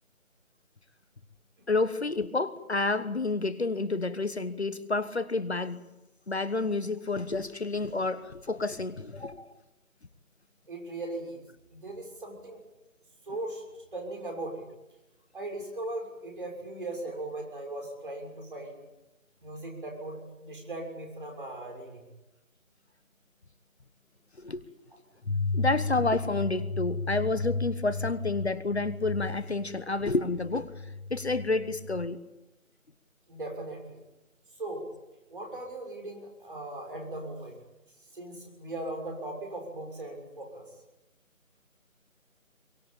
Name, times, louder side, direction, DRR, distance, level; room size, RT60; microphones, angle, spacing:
voice 1, 1.7-5.8 6.3-9.5 24.4-24.6 25.5-30.7 31.1-32.2, left 3 dB, 50° left, 14 dB, 1.3 m, -29 dB
voice 2, 10.7-11.4 11.7-12.6 13.2-13.6 13.9-14.7 15.3-18.8 19.4-22.0 33.3-34.0 34.6-34.9 35.3-37.6 38.1-40.7, right 2 dB, 40° right, 2 dB, 6.6 m, -38 dB
sound 1, 25.2-32.1, left 3 dB, 75° left, 1.4 m, -34 dB
23.5 x 21.0 x 8.8 m, 1.0 s
figure-of-eight pair, 165°, 42 cm